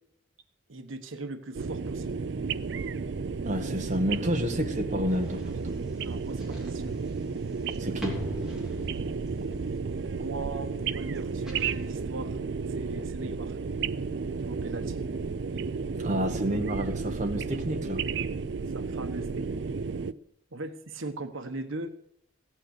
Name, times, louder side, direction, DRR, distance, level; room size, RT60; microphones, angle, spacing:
voice 1, 0.7-2.2 6.0-7.0 10.1-12.4 12.7-13.6 14.3-15.0 18.7-19.6 20.5-21.9, right 2 dB, 85° right, 7 dB, 1.1 m, -39 dB
sound 1, 1.5-20.1, right 5 dB, 60° right, 0.4 m, -33 dB
voice 2, 3.4-5.7 7.8-8.2 16.0-18.0, equal, 40° right, 3 dB, 1.5 m, -30 dB
sound 2, 5.1-12.0, equal, 5° right, 3.2 m, -42 dB
16.0 x 9.0 x 6.6 m, 0.72 s
head